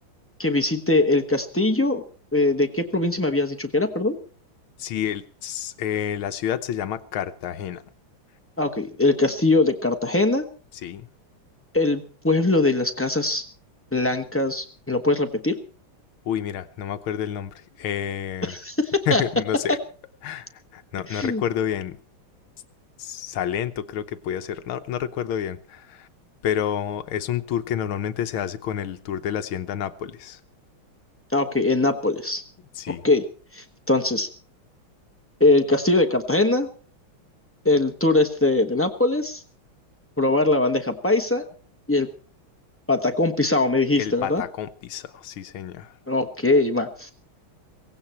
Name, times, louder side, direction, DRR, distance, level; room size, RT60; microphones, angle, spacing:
voice 1, 0.4-2.0 2.3-4.2 8.6-10.5 11.7-13.4 13.9-15.6 18.4-19.2 19.7-19.8 21.1-21.4 31.3-32.4 32.9-33.2 33.5-34.3 35.4-36.7 37.6-39.4 40.2-41.4 41.9-42.1 42.9-44.4 46.1-47.1, left 2 dB, 15° left, 3 dB, 0.5 m, -21 dB
voice 2, 4.8-7.8 10.8-11.1 16.3-18.5 19.1-19.8 20.2-20.5 20.7-22.0 23.0-26.0 26.4-30.4 32.8-33.0 44.0-45.9, left 9 dB, 75° left, 11 dB, 1.7 m, -29 dB
17.0 x 16.5 x 4.3 m, 0.39 s
omnidirectional pair, 2.3 m